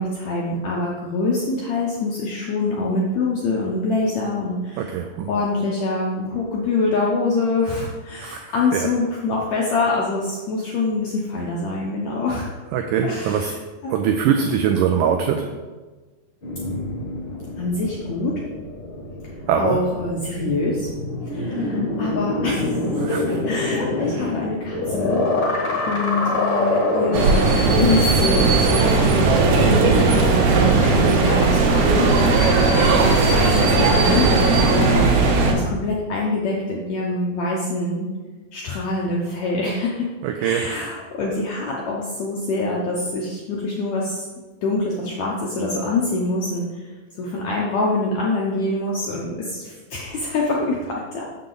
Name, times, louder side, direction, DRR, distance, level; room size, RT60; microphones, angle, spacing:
voice 1, 0.0-5.0 5.3-12.6 13.0-13.5 13.8-14.0 17.6-18.4 19.5-20.9 21.3-35.1 35.5-38.1 38.5-40.1 40.4-44.3 44.6-46.9 47.2-51.2, left 2 dB, 75° left, -3 dB, 1.6 m, -25 dB
voice 2, 4.8-5.3 8.2-8.9 12.7-13.5 13.9-15.5 19.5-19.8 23.0-23.2 24.2-24.3 40.2-40.9, right 8 dB, 85° right, 5 dB, 1.8 m, -22 dB
sound 1, 16.4-30.3 30.7-32.0, left 2 dB, 55° left, 1.2 m, -26 dB
sound 2, 27.1-35.5, right 3 dB, 70° right, 2.4 m, -17 dB
7.0 x 6.6 x 3.9 m, 1.3 s
omnidirectional pair, 4.3 m